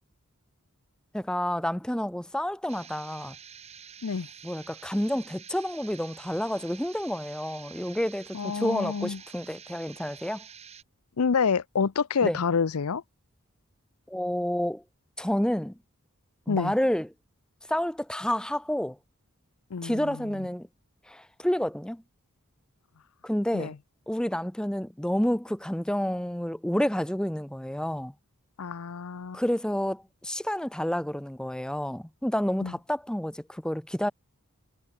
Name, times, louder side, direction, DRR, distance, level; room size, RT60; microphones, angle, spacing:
voice 1, 1.1-3.3 4.4-10.4 12.2-12.4 14.1-14.8 15.2-15.7 16.5-17.1 17.7-19.0 19.8-20.7 21.1-22.0 23.2-23.7 24.1-28.1 29.3-34.1, equal, 5° left, 0.5 m, -29 dB
sound 1, 2.7-10.8, right 7 dB, 30° right, 1.7 m, -48 dB
voice 2, 8.3-9.2 11.2-13.0 16.5-16.7 19.7-20.5 23.5-23.7 28.6-29.4 32.6-32.7, left 5 dB, 85° left, 0.6 m, -28 dB
head